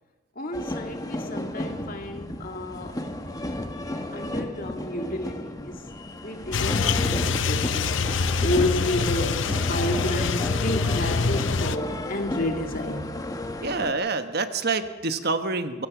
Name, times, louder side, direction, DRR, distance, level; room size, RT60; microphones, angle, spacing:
voice 1, 0.4-3.1 4.1-13.1, left 1 dB, 45° left, 2.3 m, -31 dB
sound 1, 0.5-13.9, left 1 dB, 20° left, 1.4 m, -33 dB
sound 2, 6.5-11.8, left 4 dB, 65° left, 0.7 m, -25 dB
voice 2, 13.6-15.9, right 3 dB, 50° right, 1.2 m, -27 dB
27.0 x 17.0 x 6.1 m
head